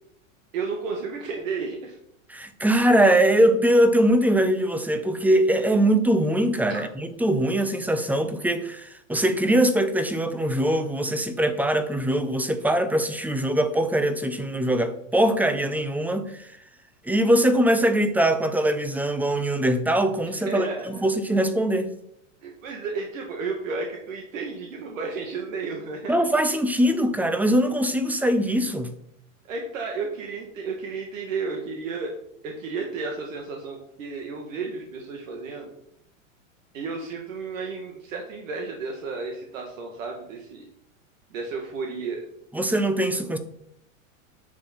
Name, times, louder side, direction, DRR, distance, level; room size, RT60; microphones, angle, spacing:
voice 1, 0.5-2.0 6.7-6.8 20.5-21.1 22.4-26.1 29.5-32.1 32.4-35.7 36.7-40.7 41.3-42.2, right 4 dB, 75° right, 1 dB, 1.8 m, -32 dB
voice 2, 2.3-16.5 17.0-21.9 26.1-28.9 42.5-43.4, right 1 dB, 5° right, 9 dB, 0.7 m, -22 dB
9.4 x 6.7 x 4.3 m, 0.73 s
hypercardioid pair, 120°, 40 cm